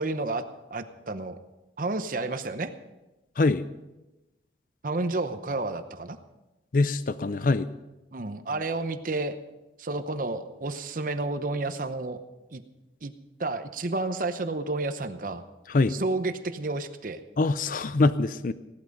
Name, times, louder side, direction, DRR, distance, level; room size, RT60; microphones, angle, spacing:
voice 1, 0.0-1.4 1.8-2.7 4.8-6.2 8.1-9.4 9.8-12.2 12.5-12.6 13.0-13.1 13.4-15.4 15.9-17.2, right 2 dB, 45° right, 9 dB, 0.8 m, -31 dB
voice 2, 3.4-3.7 6.7-7.7 15.7-16.0 17.4-18.5, left 3 dB, 45° left, 14 dB, 0.5 m, -23 dB
17.0 x 12.0 x 5.3 m, 1.0 s
head